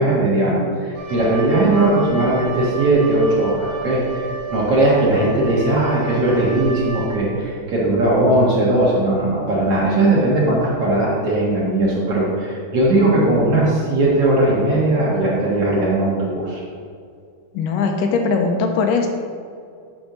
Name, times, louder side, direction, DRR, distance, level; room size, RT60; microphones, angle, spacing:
voice 1, 0.0-16.6, right 2 dB, 55° right, -6 dB, 2.0 m, -18 dB
Wind instrument woodwind instrument, 0.9-7.5, right 5 dB, 75° right, 2.9 m, -30 dB
voice 2, 17.5-19.1, left 4 dB, 80° left, 4 dB, 2.2 m, -20 dB
8.7 x 3.5 x 6.5 m, 2.3 s
omnidirectional pair, 4.0 m